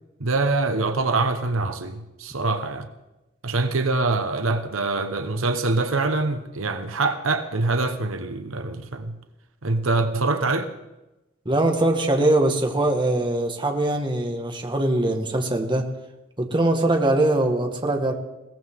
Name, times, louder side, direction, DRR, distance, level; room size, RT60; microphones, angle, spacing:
voice 1, 0.2-2.9 3.4-9.2 9.6-10.7, right 3 dB, 85° right, 1.2 m, -24 dB
voice 2, 11.4-15.9 16.4-18.1, right 1 dB, 25° right, 1.7 m, -22 dB
21.5 x 17.5 x 3.7 m
head